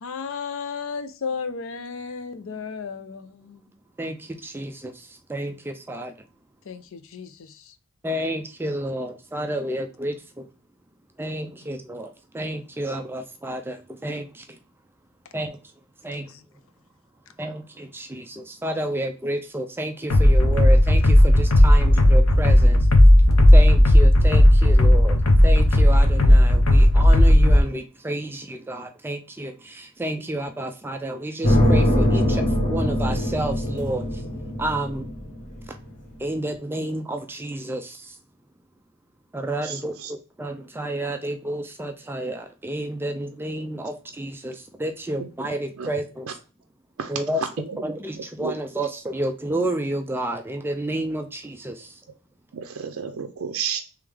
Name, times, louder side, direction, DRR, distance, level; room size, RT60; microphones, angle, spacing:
voice 1, 0.0-3.6 6.7-7.5 16.3-16.4, left 5 dB, 65° left, 0.5 m, -34 dB
voice 2, 4.0-6.1 8.0-10.4 11.2-14.5 15.3-15.6 16.0-16.3 17.4-22.8 23.5-25.2 25.4-34.0 34.6-35.1 36.2-38.1 39.3-46.3 47.1-47.4 47.8-52.0, right 1 dB, 10° right, 0.4 m, -30 dB
sound 1, 20.1-27.6, left 1 dB, 85° left, 0.8 m, -14 dB
sound 2, 31.4-35.6, equal, 40° left, 1.7 m, -22 dB
voice 3, 39.6-40.1 45.2-45.3 45.8-45.9 47.0-47.8 48.1-48.5 52.5-53.8, right 6 dB, 70° right, 0.5 m, -32 dB
3.6 x 3.3 x 3.3 m
head